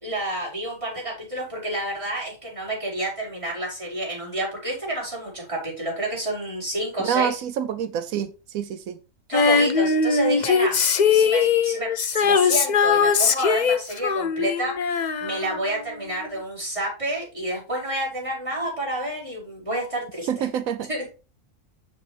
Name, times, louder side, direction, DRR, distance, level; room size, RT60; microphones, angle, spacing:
voice 1, 0.0-7.4 9.3-10.8 11.1-14.7 15.2-20.5 20.9-21.1, right 1 dB, 20° right, 4.7 m, -29 dB
voice 2, 7.0-9.0 20.3-20.9, right 9 dB, 85° right, 1.1 m, -27 dB
Female singing, 9.3-15.9 16.2-16.3, left 5 dB, 45° left, 0.6 m, -21 dB
7.6 x 7.0 x 3.4 m
omnidirectional pair, 1.4 m